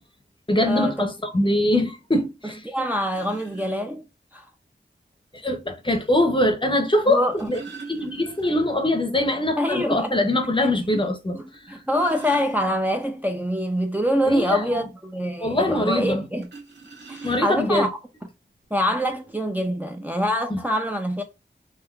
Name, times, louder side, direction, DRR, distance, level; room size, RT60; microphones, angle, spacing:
voice 1, 0.5-2.6 5.3-7.6 7.9-11.4 14.3-14.8 15.4-16.2 17.2-17.9 20.5-20.6, left 1 dB, 25° left, 0.7 m, -23 dB
voice 2, 2.4-4.0 4.3-4.4 7.1-7.5 9.6-10.2 10.9-11.0 11.3-16.5 17.1-17.9 18.7-21.2, equal, 10° right, 0.5 m, -25 dB
sound 1, 2.4-2.5 3.1-3.7 5.1-5.2 7.0-8.8 9.1-9.2 9.6-9.7 10.2-10.3 11.5-13.1 16.4-17.8 18.6-18.7 19.1-19.3, right 4 dB, 65° right, 1.7 m, -43 dB
3.5 x 2.7 x 2.3 m
wide cardioid pair, 65°, 19 cm